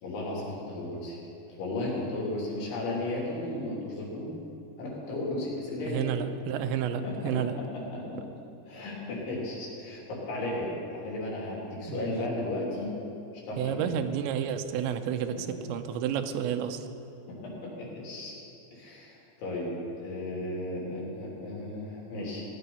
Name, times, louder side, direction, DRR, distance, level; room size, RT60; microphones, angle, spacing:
voice 1, 0.0-1.2 1.5-4.3 4.8-6.1 7.0-7.1 7.9-8.2 8.7-12.9 13.5-13.9 15.3-15.4 17.3-18.3 18.7-22.4, left 1 dB, 90° left, -5 dB, 5.5 m, -34 dB
voice 2, 5.9-7.6 11.9-12.1 13.6-16.9, right 8 dB, 85° right, 8 dB, 3.0 m, -31 dB
17.5 x 10.5 x 5.5 m, 2.8 s
omnidirectional pair, 5.2 m